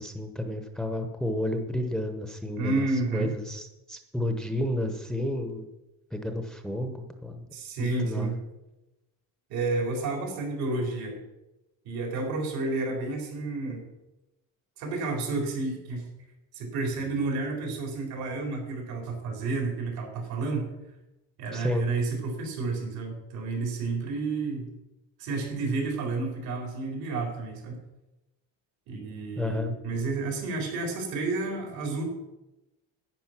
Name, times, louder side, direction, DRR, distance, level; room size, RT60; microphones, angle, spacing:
voice 1, 0.0-2.8 3.1-5.7 6.1-7.5 7.8-8.4 21.5-21.9 29.4-29.8, left 1 dB, ahead, 5 dB, 0.9 m, -31 dB
voice 2, 2.6-3.3 7.5-8.4 9.5-11.2 11.8-13.9 14.8-16.1 16.5-20.7 21.4-24.7 25.2-27.8 28.9-32.0, right 3 dB, 75° right, 1 dB, 4.3 m, -30 dB
10.5 x 9.1 x 6.0 m, 0.99 s
cardioid pair, 145°, 36 cm